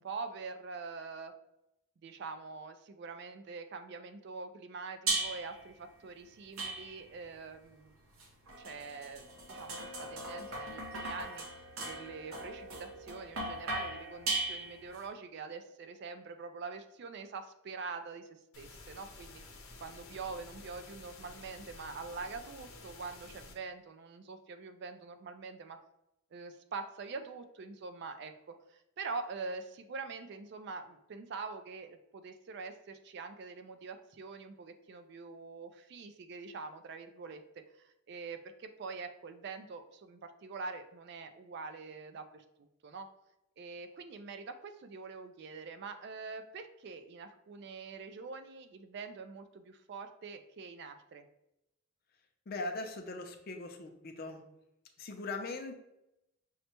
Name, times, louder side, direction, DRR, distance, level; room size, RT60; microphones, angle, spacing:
voice 1, 0.0-1.3 2.0-7.9 8.6-11.5 11.9-19.4 19.8-25.8 26.3-37.4 38.1-42.4 42.8-43.1 43.6-51.3, right 4 dB, 50° right, 8 dB, 0.3 m, -44 dB
sound 1, 5.1-5.6 6.6-7.2 8.2-15.0, right 2 dB, 80° right, 0.9 m, -38 dB
sound 2, 18.5-23.5, left 3 dB, 85° left, 0.8 m, -52 dB
voice 2, 52.5-54.4 55.0-55.8, left 2 dB, 45° left, 5 dB, 0.5 m, -40 dB
6.3 x 2.1 x 2.9 m, 0.86 s
head